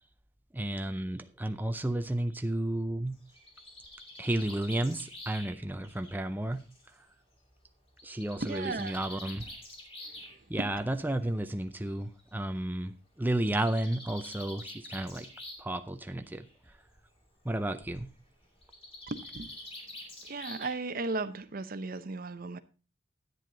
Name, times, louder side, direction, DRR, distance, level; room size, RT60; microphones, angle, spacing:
voice 1, 0.5-3.2 4.2-6.6 8.0-9.5 10.5-15.3 15.6-16.5 17.4-18.1, right 1 dB, 10° right, 0.5 m, -32 dB
Bird, 3.1-6.9 8.0-10.3 11.4-11.5 11.9-12.0 12.2-12.3 13.3-15.8 16.1-16.5 18.6-21.0, left 1 dB, 30° left, 3.1 m, -47 dB
voice 2, 8.4-9.0 10.0-10.7 19.1-19.6 20.2-22.6, right 3 dB, 50° right, 0.7 m, -36 dB
10.5 x 9.4 x 3.8 m
head